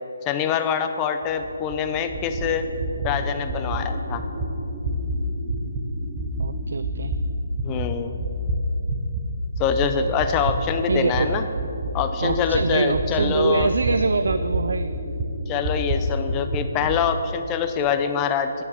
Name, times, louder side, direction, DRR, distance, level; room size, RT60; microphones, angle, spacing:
voice 1, 0.3-2.7 3.0-4.2 7.6-8.2 9.6-11.5 11.9-13.7 15.5-18.6, left 7 dB, 20° left, 7 dB, 0.7 m, -25 dB
sound 1, 1.2-9.3 9.5-17.0, right 1 dB, 30° right, 1.1 m, -28 dB
voice 2, 6.4-7.1 10.9-11.3 12.2-14.9, right 3 dB, 70° right, 11 dB, 0.4 m, -24 dB
9.8 x 7.0 x 8.5 m, 2.9 s
figure-of-eight pair, 150°, 0 cm